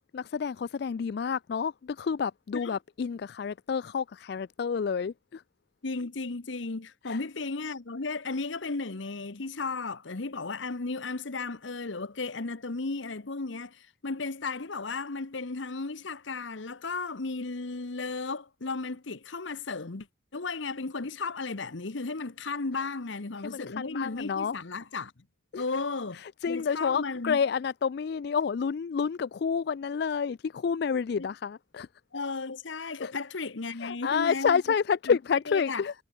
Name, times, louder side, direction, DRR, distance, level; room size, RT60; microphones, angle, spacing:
voice 1, 0.1-5.4 7.1-7.2 23.4-24.6 25.5-25.6 26.1-31.9 33.0-33.1 33.8-35.9, left 6 dB, 55° left, 0.3 m, -29 dB
voice 2, 5.8-20.1 20.3-25.1 25.6-26.2 26.5-27.4 31.2-31.3 32.1-34.6 35.1-35.2 35.5-35.8, left 3 dB, 70° left, 1.0 m, -34 dB
head